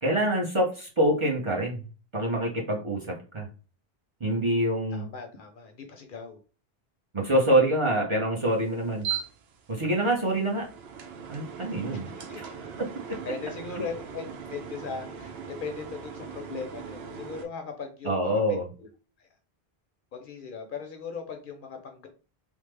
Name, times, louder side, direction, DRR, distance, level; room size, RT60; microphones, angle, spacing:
voice 1, 0.0-1.8 2.1-3.5 4.2-5.0 7.1-9.1 9.7-10.6 11.3-12.1 12.4-12.5 12.8-13.2 18.0-18.7, right 1 dB, 35° right, -2 dB, 0.7 m, -26 dB
voice 2, 4.9-6.4 12.3-12.4 13.2-18.9 19.2-19.3 20.1-22.1, left 5 dB, 60° left, 5 dB, 0.7 m, -39 dB
sound 1, 8.4-17.5, right 8 dB, 90° right, 0.8 m, -40 dB
3.3 x 2.0 x 3.2 m, 0.35 s
omnidirectional pair, 1.0 m